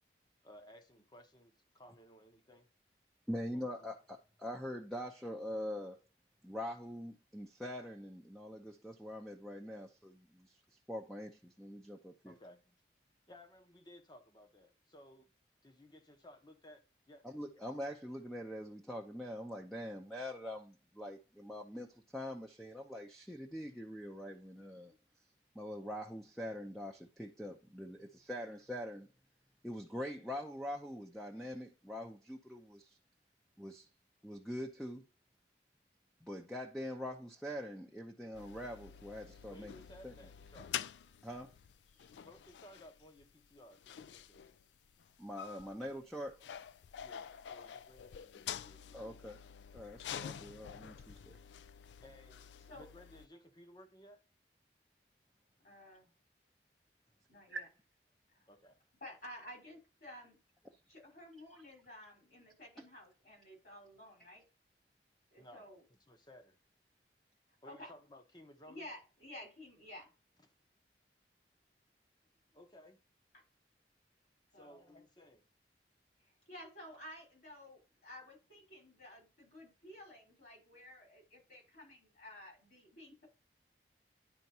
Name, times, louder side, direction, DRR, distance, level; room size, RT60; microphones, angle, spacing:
voice 1, 0.4-2.7 3.5-3.9 12.2-12.6 13.3-15.3 15.6-17.3 39.5-40.8 42.2-44.5 47.0-49.3 52.0-52.5 52.7-54.2 58.5-58.8 65.4-66.6 67.6-68.9 70.4-70.5 72.5-73.0 74.5-75.5, equal, 25° left, 0.9 m, -58 dB
voice 2, 3.3-6.0 6.4-10.6 10.9-12.3 17.2-24.9 25.5-29.1 29.6-33.0 33.6-33.9 34.2-35.1 36.2-39.7 40.0-40.1 41.2-41.5 45.2-46.4 48.9-49.4 49.7-51.4 57.5-57.6 61.5-61.6, equal, ahead, 0.6 m, -44 dB
sound 1, 38.3-53.3, left 9 dB, 90° left, 0.3 m, -48 dB
voice 3, 55.6-56.1 57.3-57.7 58.3-58.4 59.0-60.4 60.7-64.4 65.3-65.8 67.6-67.9 68.7-70.1 74.5-75.0 76.2-83.3, left 1 dB, 60° left, 4.2 m, -53 dB
10.5 x 4.4 x 2.8 m
head